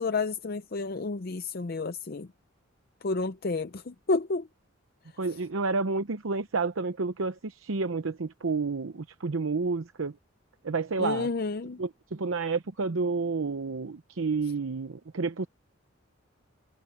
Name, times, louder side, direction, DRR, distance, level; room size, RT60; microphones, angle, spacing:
voice 1, 0.0-2.3 3.0-4.5 11.0-11.8, left 3 dB, 50° left, 0.6 m, -30 dB
voice 2, 5.2-10.1 10.6-11.3 11.8-15.5, right 4 dB, 80° right, 0.8 m, -30 dB
head